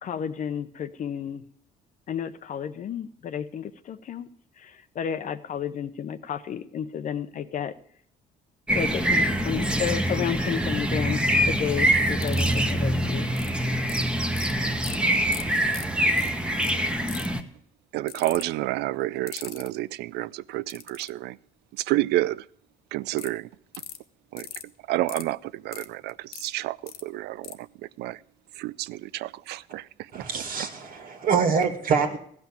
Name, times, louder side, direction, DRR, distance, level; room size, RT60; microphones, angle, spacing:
voice 1, 0.0-1.4 2.1-4.3 4.6-7.7 8.7-11.2 11.5-13.3 32.0-32.1, left 8 dB, 50° left, 0.7 m, -32 dB
sound 1, 8.7-17.4, equal, 5° right, 1.1 m, -24 dB
sound 2, 12.2-12.7 13.4-13.5 13.9-14.5 14.8-15.0 15.3-15.4 15.7-15.8 16.2-16.3 16.6-16.7 17.1-17.4 18.1-18.4 19.3-19.7 20.7-21.1 23.2-23.3 23.7-24.0 24.4-24.6 25.1-25.2 25.7-26.5 26.9-27.0 27.4-27.5, left 10 dB, 65° left, 1.1 m, -38 dB
voice 2, 17.9-21.4 21.7-22.5 22.9-23.5 24.3-24.5 24.9-28.2 28.6-30.4, right 16 dB, 80° right, 0.5 m, -30 dB
voice 3, 30.1-32.2, right 5 dB, 60° right, 1.9 m, -25 dB
15.0 x 6.0 x 8.5 m
cardioid pair, 110°, 17 cm